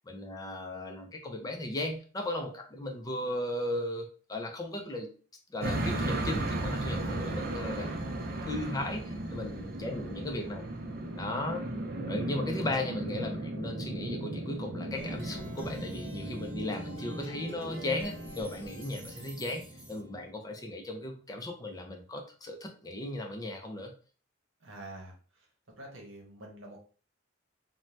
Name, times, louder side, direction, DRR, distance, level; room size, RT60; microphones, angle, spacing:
voice 1, 0.1-5.1 5.5-7.9 8.4-10.7 11.2-11.7 12.1-23.9, left 1 dB, 20° left, 3 dB, 0.4 m, -36 dB
sound 1, 5.6-19.9, right 1 dB, 50° right, 0.4 m, -36 dB
Plucked string instrument, 14.9-20.3, right 1 dB, 30° right, 1.1 m, -44 dB
voice 2, 24.6-25.5 25.8-26.8, right 1 dB, 70° right, 0 dB, 0.9 m, -47 dB
2.7 x 2.1 x 3.1 m, 0.40 s
head